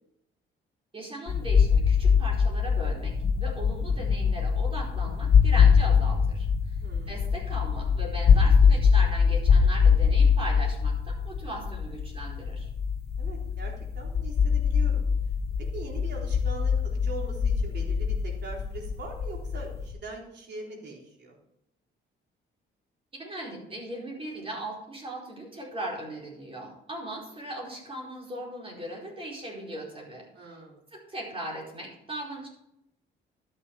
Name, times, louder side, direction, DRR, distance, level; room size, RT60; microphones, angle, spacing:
voice 1, 0.9-6.7 7.1-12.7 23.2-30.6 30.9-32.5, right 1 dB, 30° right, -2 dB, 4.6 m, -38 dB
sound 1, 1.3-19.9, left 6 dB, 55° left, 1.9 m, -23 dB
voice 2, 6.8-7.2 13.2-15.0 15.7-21.4 30.3-30.8, right 3 dB, 60° right, -1 dB, 3.6 m, -42 dB
12.5 x 6.8 x 4.9 m, 0.79 s
cardioid pair, 90°, 20 cm